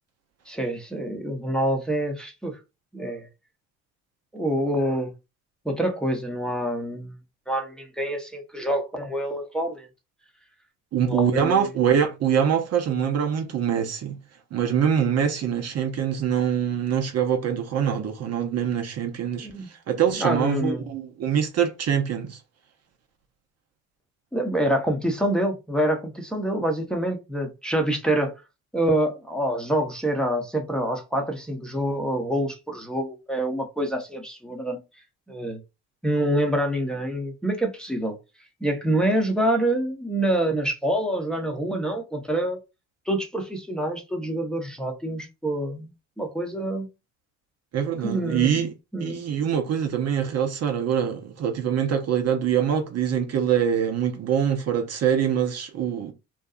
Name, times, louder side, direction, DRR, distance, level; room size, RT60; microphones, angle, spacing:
voice 1, 0.5-2.6 2.9-3.3 4.3-5.1 5.6-7.1 7.5-9.9 11.0-11.7 19.4-19.7 20.2-20.9 24.3-28.3 28.7-34.8 35.3-35.6 36.0-38.2 38.6-42.6 43.1-45.9 46.2-46.9 48.0-49.2, right 1 dB, ahead, 0.8 m, -26 dB
voice 2, 10.9-14.2 14.5-22.4 47.7-48.7 49.0-56.1, right 8 dB, 45° right, 0.7 m, -24 dB
2.6 x 2.2 x 2.4 m
hypercardioid pair, 65°, 36 cm